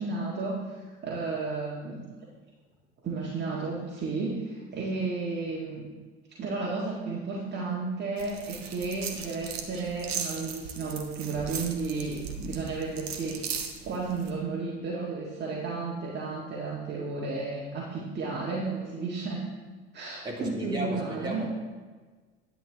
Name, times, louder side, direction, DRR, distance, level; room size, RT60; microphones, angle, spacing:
voice 1, 0.0-2.0 3.0-5.8 6.4-13.4 13.8-19.5 19.9-21.4, right 3 dB, 30° right, -5 dB, 1.8 m, -33 dB
sound 1, 8.2-14.3, right 6 dB, 70° right, 1.1 m, -38 dB
voice 2, 20.2-21.5, equal, 15° right, -4 dB, 2.8 m, -34 dB
10.5 x 8.0 x 3.6 m, 1.4 s
figure-of-eight pair, 70°, 32 cm